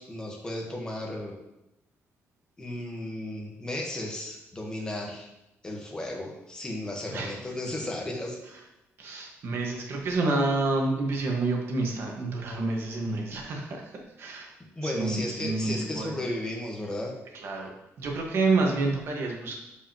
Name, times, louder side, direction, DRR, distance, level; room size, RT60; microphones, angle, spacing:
voice 1, 0.0-1.4 2.6-5.3 5.6-8.4 14.8-17.1, left 1 dB, 15° left, -1 dB, 1.3 m, -34 dB
voice 2, 9.0-14.5 14.8-16.2 17.3-17.7 18.0-19.5, right 3 dB, 50° right, 0 dB, 1.5 m, -28 dB
11.0 x 5.0 x 3.0 m, 0.90 s
cardioid pair, 170°, 5 cm